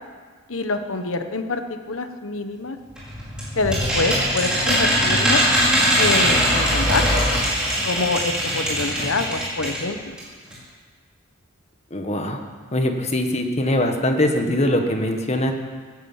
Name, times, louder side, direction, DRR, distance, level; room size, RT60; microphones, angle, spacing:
voice 1, 0.5-1.6 1.9-2.8 3.6-5.4 6.0-7.0 7.8-10.2, left 3 dB, 75° left, 7 dB, 1.2 m, -26 dB
sound 1, 3.0-9.9 10.2-10.3 10.5-10.6, equal, 5° right, 4.9 m, -21 dB
voice 2, 11.9-12.4 12.7-15.5, left 1 dB, 30° left, 5 dB, 1.5 m, -22 dB
16.0 x 11.0 x 7.3 m, 1.6 s
head